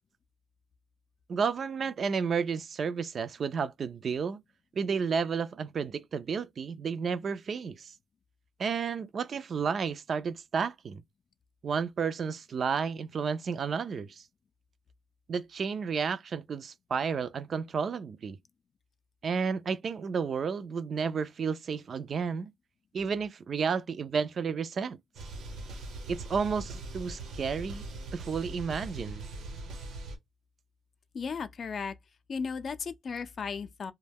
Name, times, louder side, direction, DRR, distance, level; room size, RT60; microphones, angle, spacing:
voice 1, 1.3-4.4 4.7-7.9 8.6-11.0 11.6-14.2 15.3-18.4 19.2-22.5 22.9-25.0 26.1-27.8 28.1-29.3, right 6 dB, 50° right, 0.3 m, -32 dB
sound 1, 25.1-30.2, right 2 dB, 80° right, 1.0 m, -41 dB
voice 2, 31.1-31.9 32.3-33.9, left 5 dB, 50° left, 0.4 m, -35 dB
2.2 x 2.1 x 3.3 m
cardioid pair, 90°, 0 cm